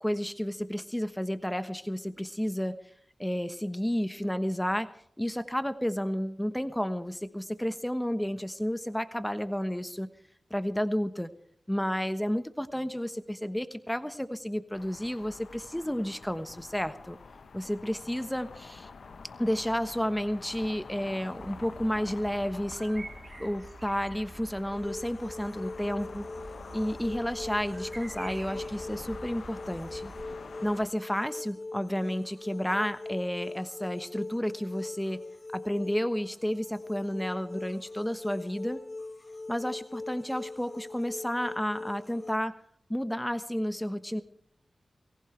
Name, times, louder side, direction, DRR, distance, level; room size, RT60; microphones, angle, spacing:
voice 1, 0.0-2.8 3.2-4.9 5.2-10.1 10.5-11.3 11.7-17.2 17.5-18.9 19.4-23.1 23.4-26.3 26.7-30.1 30.6-35.2 35.5-38.8 39.5-42.5 42.9-44.2, equal, 10° left, 10 dB, 1.2 m, -31 dB
sound 1, 14.7-30.9, left 4 dB, 85° left, 0.9 m, -48 dB
sound 2, 21.4-30.3, right 2 dB, 45° right, 3.6 m, -47 dB
sound 3, 24.7-42.4, left 2 dB, 40° left, 1.3 m, -41 dB
23.0 x 15.5 x 3.3 m, 0.68 s
cardioid pair, 45°, 0 cm